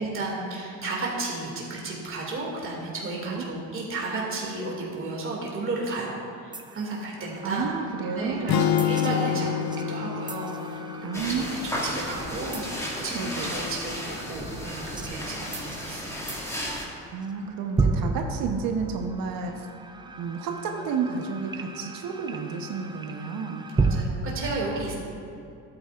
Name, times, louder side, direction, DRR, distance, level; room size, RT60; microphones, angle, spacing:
voice 1, 0.0-7.7 8.1-12.7 13.0-16.4 23.8-24.9, right 2 dB, 35° right, -4 dB, 2.3 m, -33 dB
sound 1, 6.5-24.0, right 3 dB, 10° right, 0.5 m, -34 dB
voice 2, 7.4-8.7 11.0-11.4 11.9-12.0 13.1-13.6 17.1-19.7 20.2-23.7, right 5 dB, 65° right, 3 dB, 1.0 m, -31 dB
sound 2, 8.5-12.6, left 9 dB, 65° left, 0.7 m, -28 dB
sound 3, 11.1-16.9, equal, 10° left, 2.1 m, -34 dB
13.0 x 9.0 x 2.5 m, 2.6 s
supercardioid pair, 95°, 37 cm